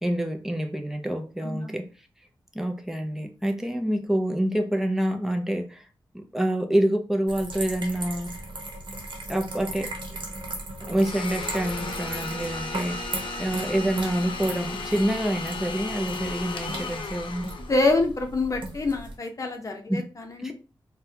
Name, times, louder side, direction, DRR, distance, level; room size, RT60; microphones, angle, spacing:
voice 1, 0.0-1.9 2.5-5.8 6.1-8.3 9.3-9.9 10.9-13.1 13.4-17.5 19.9-20.0 20.4-20.5, right 1 dB, 5° right, 0.5 m, -27 dB
sound 1, 7.3-19.1, right 2 dB, 65° right, 0.9 m, -37 dB
Domestic sounds home sounds, 11.0-18.0, left 3 dB, 75° left, 0.6 m, -35 dB
voice 2, 17.7-20.5, left 2 dB, 40° left, 0.8 m, -26 dB
3.9 x 2.2 x 2.7 m
wide cardioid pair, 110°, 9 cm